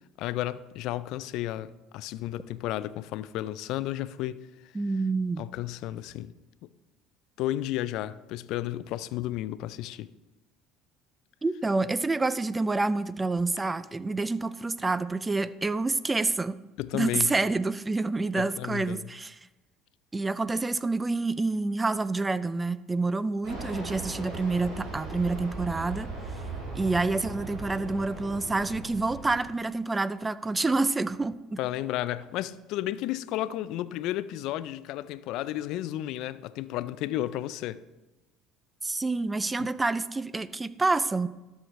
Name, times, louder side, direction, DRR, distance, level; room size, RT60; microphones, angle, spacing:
voice 1, 0.2-4.7 5.4-6.3 7.4-10.1 16.8-17.3 18.4-19.1 31.6-37.8 39.6-39.7, left 14 dB, 70° left, 0.4 m, -33 dB
voice 2, 4.7-5.4 11.4-16.6 16.9-19.4 20.1-26.1 26.7-31.6 38.8-41.3, right 3 dB, 20° right, 0.4 m, -28 dB
Fixed-wing aircraft airplane, 23.4-29.4, right 2 dB, 65° right, 3.2 m, -38 dB
12.5 x 6.3 x 3.2 m
hypercardioid pair, 75°, 0 cm